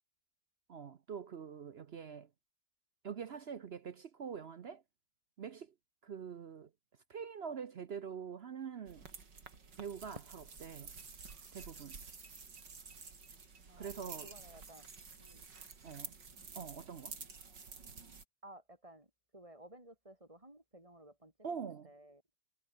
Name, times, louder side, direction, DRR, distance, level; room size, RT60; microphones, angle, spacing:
voice 1, 0.7-2.3 3.0-4.8 5.4-5.7 6.0-6.7 7.1-9.1 9.8-10.9 11.5-12.0 13.8-14.3 15.8-16.2 16.5-17.2 21.4-21.9, right 7 dB, 55° right, 0.7 m, -45 dB
sound 1, 8.9-18.2, right 5 dB, 90° right, 3.7 m, -51 dB
voice 2, 11.3-11.9 13.7-14.9 15.2-15.4 18.4-22.2, right 1 dB, 20° right, 5.8 m, -57 dB
omnidirectional pair, 1.9 m